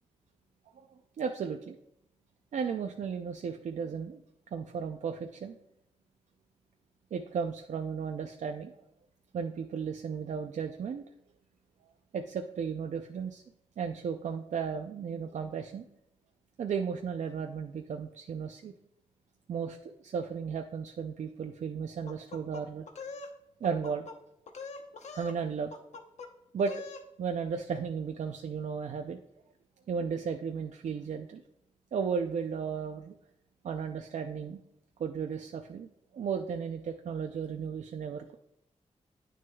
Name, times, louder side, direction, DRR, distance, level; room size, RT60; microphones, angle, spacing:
voice 1, 0.8-1.8 2.5-4.2 4.5-5.6 7.1-8.8 9.3-11.0 12.1-13.4 13.8-15.8 16.6-18.7 19.5-22.9 23.6-24.1 25.1-25.7 26.5-26.7 27.2-29.2 29.9-31.4 31.9-33.2 33.6-34.6 35.0-35.9 36.1-38.4, right 6 dB, 75° right, 4 dB, 0.5 m, -34 dB
sound 1, 22.1-23.3 23.6-24.2 24.5-25.4 25.7-26.3 26.6-27.0, left 4 dB, 70° left, 0.9 m, -43 dB
9.3 x 6.3 x 2.3 m, 0.77 s
wide cardioid pair, 105°, 12 cm